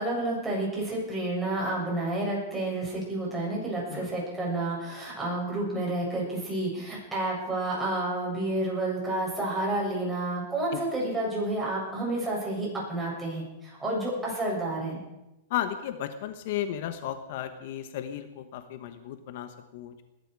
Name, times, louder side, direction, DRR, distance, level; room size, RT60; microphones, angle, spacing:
voice 1, 0.0-15.0, right 2 dB, 10° right, -4 dB, 7.6 m, -30 dB
voice 2, 15.5-20.0, left 11 dB, 60° left, 9 dB, 1.2 m, -34 dB
20.5 x 12.5 x 4.8 m, 0.94 s
hypercardioid pair, 135°, 0 cm